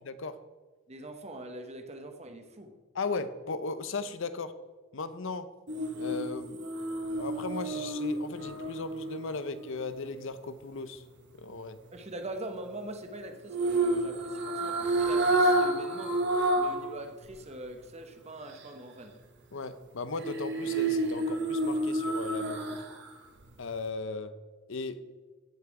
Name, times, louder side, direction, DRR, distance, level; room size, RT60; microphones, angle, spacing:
voice 1, 0.1-0.4 2.9-4.6 4.9-5.5 6.0-6.6 7.2-11.0 11.4-11.8 19.5-22.8 23.6-24.3 24.7-25.1, left 4 dB, 65° left, 12 dB, 0.7 m, -37 dB
voice 2, 0.9-2.7 11.9-16.2 16.5-19.2, right 1 dB, 30° right, 6 dB, 1.0 m, -43 dB
sound 1, 5.7-9.9 13.5-16.9 17.2-17.3 20.2-23.1 23.4-23.5, right 2 dB, 60° right, 1.5 m, -29 dB
15.5 x 5.9 x 4.8 m, 1.3 s
head